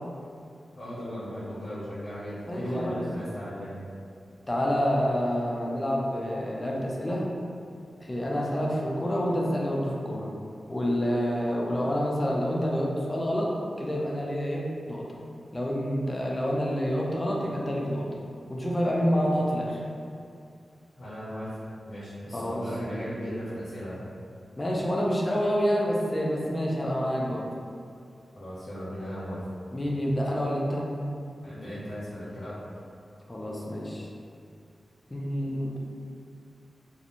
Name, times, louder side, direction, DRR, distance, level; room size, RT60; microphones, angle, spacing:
voice 1, 0.7-3.7 21.0-21.5 21.8-24.0 28.3-29.4 31.4-32.6, equal, 65° left, -11 dB, 0.6 m, -36 dB
voice 2, 2.5-3.0 4.5-7.3 8.0-10.3 10.7-13.5 13.8-15.1 15.5-18.1 18.5-19.8 22.3-22.6 24.6-27.5 29.7-30.9 33.3-34.1 35.1-35.8, equal, 20° left, -3 dB, 0.3 m, -28 dB
2.8 x 2.0 x 2.5 m, 2.4 s
wide cardioid pair, 135°, 0 cm